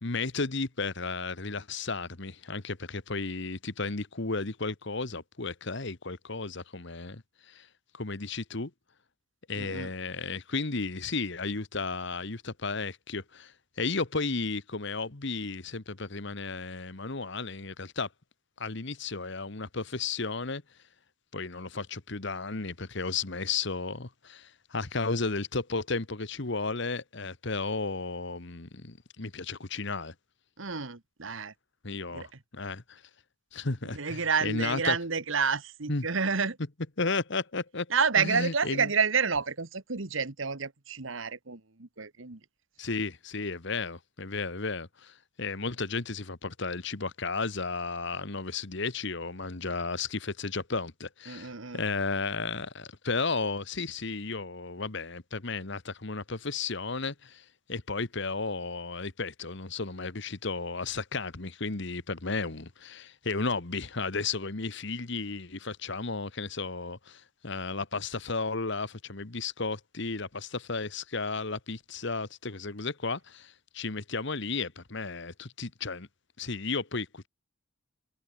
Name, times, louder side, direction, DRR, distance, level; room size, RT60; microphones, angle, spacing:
voice 1, 0.0-7.7 7.9-8.7 9.5-18.1 18.6-20.6 21.3-30.1 31.8-33.0 33.5-35.0 35.9-36.1 37.0-37.9 38.2-38.9 42.8-76.1 76.4-77.3, left 4 dB, 55° left, 1.4 m, -34 dB
voice 2, 9.6-9.9 30.6-31.5 32.1-32.3 33.9-36.6 37.9-42.4 51.3-51.8, right 5 dB, 65° right, 1.5 m, -29 dB
head